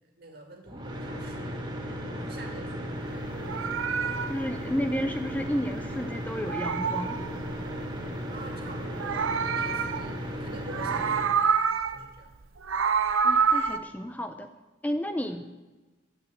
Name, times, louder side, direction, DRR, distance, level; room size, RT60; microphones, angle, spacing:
voice 1, 0.2-3.7 8.3-11.6 11.9-12.4 15.2-15.4, right 2 dB, 50° right, 2 dB, 2.1 m, -47 dB
sound 1, 0.6-11.3, equal, 20° right, 1.5 m, -36 dB
Meow, 3.3-5.9 6.2-7.9 8.7-10.4 10.7-12.1 12.4-13.8, right 6 dB, 80° right, 0.6 m, -28 dB
voice 2, 4.2-7.2 13.2-14.5 14.8-15.4, equal, 10° left, 7 dB, 0.3 m, -32 dB
9.6 x 7.1 x 7.7 m, 1.2 s
head